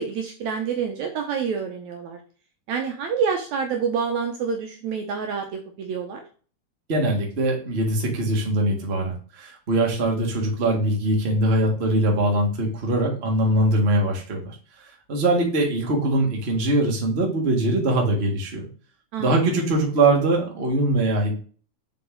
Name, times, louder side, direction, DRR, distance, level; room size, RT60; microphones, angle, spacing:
voice 1, 0.0-2.2 2.7-6.2 19.1-19.5, right 6 dB, 70° right, 4 dB, 1.8 m, -27 dB
voice 2, 6.9-14.5 14.8-18.7 19.2-21.3, right 1 dB, 35° right, 0 dB, 1.1 m, -22 dB
6.8 x 4.6 x 3.8 m, 0.40 s
omnidirectional pair, 3.9 m